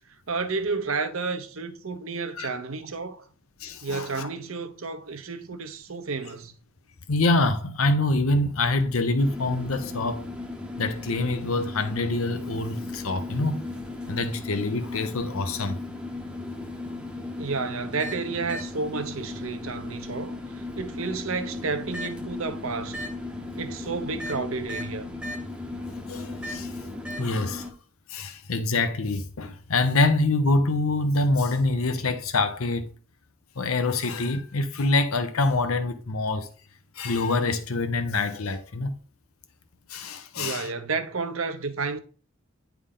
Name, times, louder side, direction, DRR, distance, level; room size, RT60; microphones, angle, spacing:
voice 1, 0.3-3.2 3.8-6.6 17.4-23.0 23.6-25.1 40.4-42.0, right 4 dB, 80° right, 0.8 m, -31 dB
voice 2, 3.6-4.3 7.1-10.2 10.8-13.7 14.1-15.8 25.9-26.8 27.2-27.7 28.1-32.9 33.6-36.5 37.0-38.9 39.9-40.7, left 2 dB, 90° left, 0.8 m, -25 dB
sound 1, 9.2-27.7, left 2 dB, 5° right, 0.7 m, -36 dB
9.7 x 3.5 x 3.7 m
head